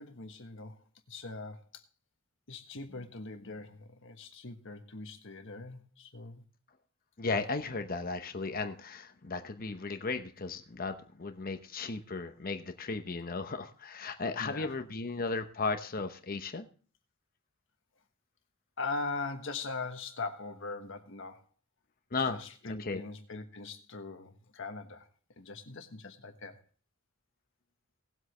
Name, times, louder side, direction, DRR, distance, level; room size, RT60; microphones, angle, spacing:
voice 1, 0.0-1.8 2.5-6.4 14.4-14.8 18.8-21.4 22.1-25.1 25.4-26.6, left 3 dB, 65° left, 1.4 m, -41 dB
voice 2, 7.2-16.7 22.1-22.4 22.7-23.0, left 4 dB, 45° left, 0.9 m, -35 dB
18.5 x 7.9 x 3.2 m
head